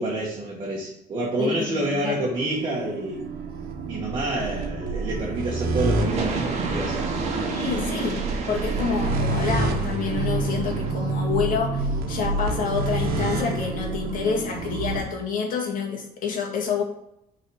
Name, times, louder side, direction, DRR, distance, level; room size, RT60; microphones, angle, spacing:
voice 1, 0.0-3.2 3.9-7.3, right 1 dB, 30° right, -3 dB, 1.3 m, -28 dB
voice 2, 1.4-2.2 7.5-16.8, left 6 dB, 60° left, 0 dB, 1.8 m, -28 dB
sound 1, 2.3-15.0, right 3 dB, 75° right, 1.2 m, -28 dB
sound 2, 5.9-10.9, right 4 dB, 45° right, 1.2 m, -31 dB
6.4 x 4.0 x 6.2 m, 0.79 s
cardioid pair, 175°, 16 cm